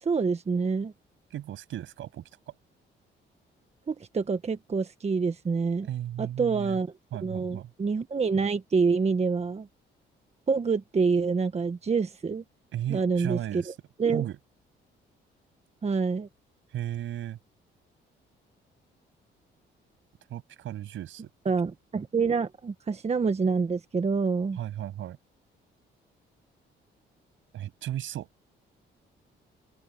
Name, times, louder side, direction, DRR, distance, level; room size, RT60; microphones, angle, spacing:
voice 1, 0.0-0.9 3.9-5.9 6.2-6.9 7.2-9.7 10.5-12.4 12.9-13.7 14.0-14.3 15.8-16.3 21.4-24.6, right 5 dB, 35° right, 1.4 m, -27 dB
voice 2, 1.3-2.3 5.8-6.8 7.1-7.7 12.7-13.7 14.1-14.4 16.7-17.4 20.3-21.3 24.6-25.2 27.5-28.3, right 12 dB, 75° right, 7.2 m, -35 dB
open air
cardioid pair, 90°, 20 cm